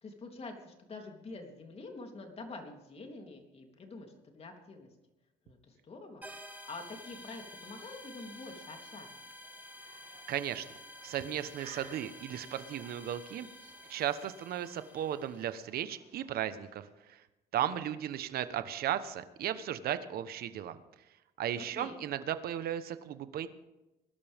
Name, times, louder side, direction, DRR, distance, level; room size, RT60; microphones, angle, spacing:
voice 1, 0.0-4.9 5.4-9.3 21.6-22.0, left 3 dB, 35° left, 3 dB, 3.4 m, -47 dB
sound 1, 6.2-15.6, left 1 dB, 10° right, 1.9 m, -51 dB
sound 2, 6.7-17.1, right 4 dB, 50° right, 6.8 m, -59 dB
voice 2, 10.3-10.7 11.0-13.5 13.9-16.8 17.1-17.2 17.5-20.8 21.4-23.5, right 10 dB, 65° right, 12 dB, 1.1 m, -35 dB
21.5 x 12.0 x 3.6 m, 0.96 s
cardioid pair, 110°, 17 cm